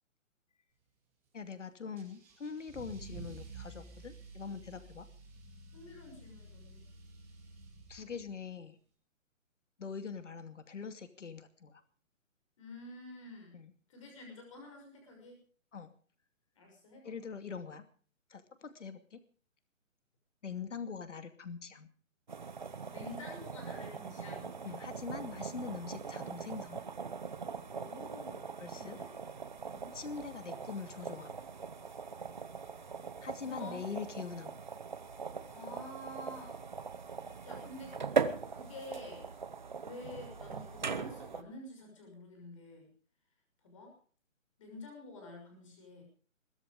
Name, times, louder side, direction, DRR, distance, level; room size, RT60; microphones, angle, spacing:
voice 1, 1.3-5.1 7.9-8.8 9.8-11.8 13.5-13.7 15.7-15.9 17.0-17.9 18.3-19.2 20.4-21.9 24.6-26.8 28.6-29.0 29.9-31.4 33.2-34.6, left 5 dB, 65° left, 10 dB, 2.5 m, -43 dB
Car / Engine starting / Accelerating revving vroom, 2.0-8.4, right 3 dB, 5° right, 2.6 m, -51 dB
voice 2, 5.7-6.8 12.6-13.6 13.9-15.4 16.5-17.1 22.9-24.5 27.7-29.1 29.7-30.0 33.4-33.8 35.5-36.6 37.4-38.0 38.5-39.3 39.8-42.9 43.6-43.9 44.6-46.0, left 2 dB, 25° left, 1 dB, 6.2 m, -49 dB
sound 1, 22.3-41.4, right 5 dB, 35° right, 1.0 m, -40 dB
22.0 x 12.0 x 5.0 m, 0.44 s
hypercardioid pair, 180°, 40 cm